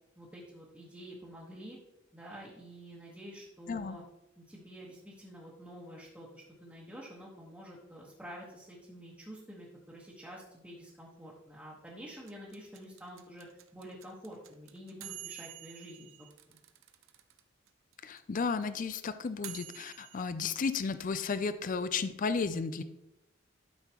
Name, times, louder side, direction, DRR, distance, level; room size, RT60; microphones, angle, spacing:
voice 1, 0.2-1.8 2.1-4.0 4.4-13.5 13.7-16.6, equal, 5° right, -6 dB, 1.4 m, -48 dB
voice 2, 3.7-4.0 18.0-22.8, left 5 dB, 40° left, 12 dB, 0.4 m, -33 dB
sound 1, 12.3-17.4 17.7-17.8 17.9-20.2, right 13 dB, 85° right, 0.7 m, -48 dB
11.5 x 5.7 x 3.0 m, 0.88 s
head